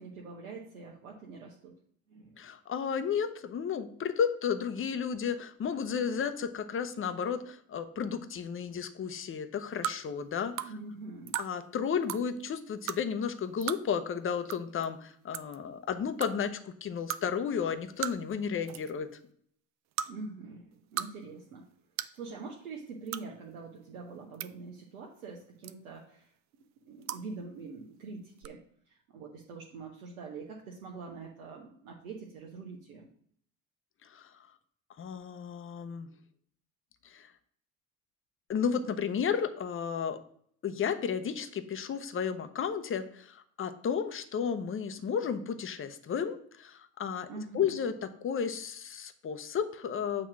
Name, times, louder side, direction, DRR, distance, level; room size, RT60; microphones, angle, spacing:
voice 1, 0.0-1.7 2.1-2.4 10.6-11.4 20.1-21.6 22.1-26.3 26.8-28.6 28.9-33.1 47.3-47.9, right 4 dB, 80° right, -1 dB, 1.0 m, -44 dB
voice 2, 2.4-10.7 11.4-19.1 34.0-34.4 35.0-36.1 37.0-37.3 38.5-40.2 40.6-47.3 47.5-50.3, left 7 dB, 30° left, 9 dB, 0.8 m, -33 dB
sound 1, 9.8-10.0 10.6-10.7 11.3-11.5 12.0-12.2 12.9-13.0 13.6-13.8 14.5-14.6 14.8-14.9 15.3-15.6 16.2-16.3 17.1-17.2 18.0-18.3 18.6-18.9 19.9-20.1 20.7-21.1 21.4-21.5 22.0-22.2 23.1-23.2 24.1-24.5 25.6-26.0 27.0-27.2 28.4-28.5, right 11 dB, 45° right, 0.4 m, -35 dB
7.4 x 3.0 x 5.9 m, 0.64 s
hypercardioid pair, 60°, 41 cm